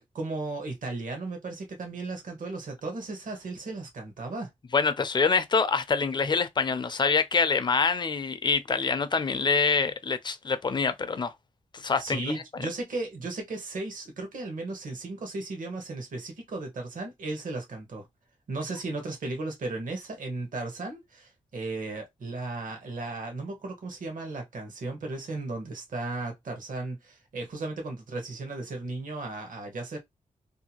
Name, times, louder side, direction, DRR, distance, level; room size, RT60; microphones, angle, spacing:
voice 1, 0.1-4.5 12.0-18.1 18.5-30.0, right 2 dB, 70° right, 0.9 m, -35 dB
voice 2, 4.7-11.3 11.7-12.2 12.6-12.7, left 5 dB, 30° left, 0.4 m, -25 dB
2.7 x 2.3 x 2.8 m
wide cardioid pair, 120°, 14 cm